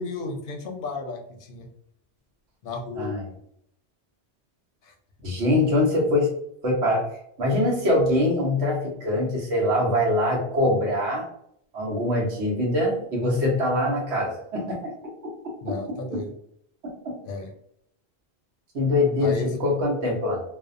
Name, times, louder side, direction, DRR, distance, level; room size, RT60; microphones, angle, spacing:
voice 1, 0.0-1.7 2.6-3.1 4.8-4.9 15.6-16.3 17.3-17.5 19.2-19.5, left 3 dB, 60° left, 2 dB, 0.7 m, -33 dB
voice 2, 2.9-3.3 5.2-6.3 6.6-7.1 7.4-11.3 11.7-16.2 16.8-17.2 18.7-20.4, left 1 dB, 80° right, -2 dB, 1.1 m, -24 dB
2.6 x 2.1 x 2.4 m, 0.72 s
omnidirectional pair, 1.1 m